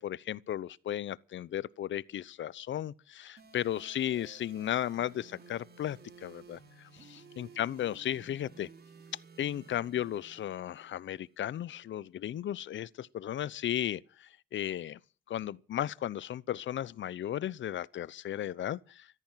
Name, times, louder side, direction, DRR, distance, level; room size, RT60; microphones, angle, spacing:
voice 1, 0.0-8.7 9.4-15.0 15.3-19.1, left 11 dB, 60° left, 0.8 m, -35 dB
sound 1, 3.4-11.4, right 4 dB, 50° right, 5.7 m, -55 dB
15.5 x 14.0 x 5.8 m
supercardioid pair, 70°, 21 cm